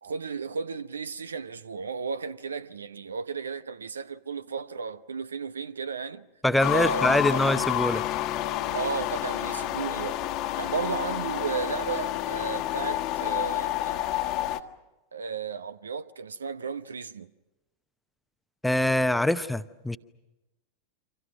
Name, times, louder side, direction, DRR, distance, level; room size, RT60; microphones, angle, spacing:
voice 1, 0.0-6.3 6.7-7.4 8.7-10.2 10.6-14.0 15.1-17.3, right 5 dB, 70° right, 0.8 m, -34 dB
voice 2, 6.4-8.0 18.6-20.0, left 1 dB, 5° left, 0.8 m, -24 dB
sound 1, 6.6-14.6, left 14 dB, 40° left, 1.4 m, -29 dB
29.0 x 26.0 x 6.2 m
figure-of-eight pair, 90°, 0 cm